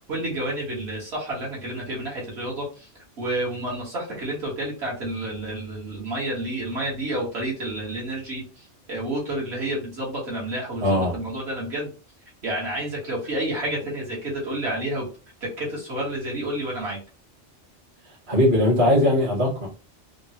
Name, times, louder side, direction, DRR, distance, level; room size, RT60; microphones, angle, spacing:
voice 1, 0.1-2.9 3.2-11.9 12.4-15.1 15.6-17.0, right 1 dB, 65° right, 1.4 m, -30 dB
voice 2, 10.8-11.2 18.0-19.7, left 1 dB, 50° right, 1.3 m, -20 dB
3.6 x 2.0 x 2.7 m
omnidirectional pair, 1.2 m